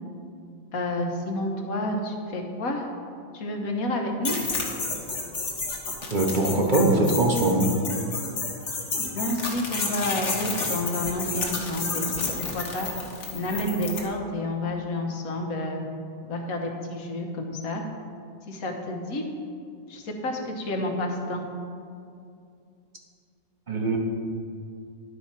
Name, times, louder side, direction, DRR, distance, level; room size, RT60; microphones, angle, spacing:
voice 1, 0.7-2.9 3.3-4.4 9.1-12.1 12.5-12.9 13.3-15.8 16.3-17.8 18.5-19.2 19.9-21.4, left 1 dB, 80° left, 2 dB, 1.4 m, -29 dB
sound 1, 4.3-14.1, left 3 dB, 60° left, 1.5 m, -31 dB
voice 2, 6.1-7.7 23.7-24.0, right 2 dB, 40° right, 0 dB, 0.9 m, -22 dB
11.0 x 4.3 x 5.9 m, 2.4 s
omnidirectional pair, 1.5 m